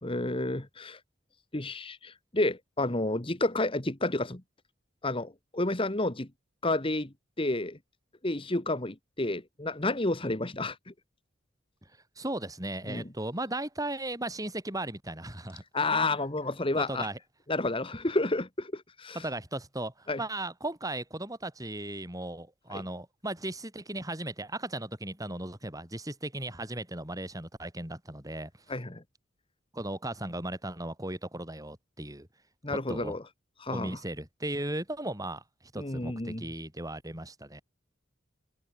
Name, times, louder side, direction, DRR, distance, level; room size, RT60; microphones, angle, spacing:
voice 1, 0.0-1.0 1.5-4.4 5.0-6.3 6.6-7.8 8.2-10.9 12.9-13.0 15.7-17.1 17.5-19.2 20.1-20.2 22.7-22.8 28.7-29.0 32.6-33.2 33.6-34.0 35.8-36.4, left 2 dB, 25° left, 1.7 m, -30 dB
voice 2, 12.2-15.6 15.9-16.0 16.7-17.2 19.1-28.5 29.7-32.3 32.7-33.2 33.7-35.4 35.7-37.6, right 1 dB, 20° right, 6.4 m, -36 dB
open air
head